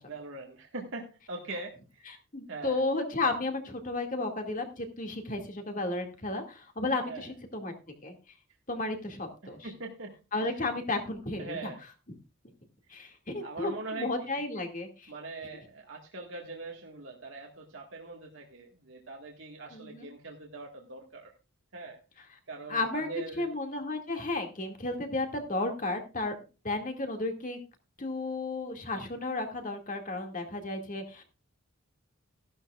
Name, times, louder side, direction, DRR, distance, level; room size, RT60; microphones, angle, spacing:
voice 1, 0.1-2.1 2.5-2.8 7.0-7.3 9.4-10.6 11.4-11.8 13.0-13.1 13.4-14.4 15.1-21.3 21.7-22.0 22.5-23.5, right 3 dB, 65° right, 0 dB, 1.8 m, -42 dB
voice 2, 2.1-7.7 8.0-8.2 8.7-9.7 10.3-11.7 12.9-15.1 19.7-20.1 22.7-23.1 23.4-26.3 26.6-27.6 28.0-31.2, left 2 dB, 40° left, 5 dB, 2.1 m, -33 dB
15.0 x 11.5 x 2.4 m, 0.31 s
head